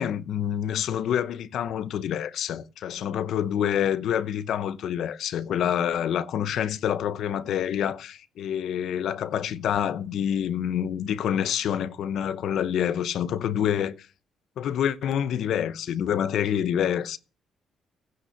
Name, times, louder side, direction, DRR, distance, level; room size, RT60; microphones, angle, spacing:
voice 1, 0.0-14.1 14.6-17.2, left 9 dB, 75° left, 0.8 m, -27 dB
16.0 x 5.7 x 6.8 m
cardioid pair, 90°, 0 cm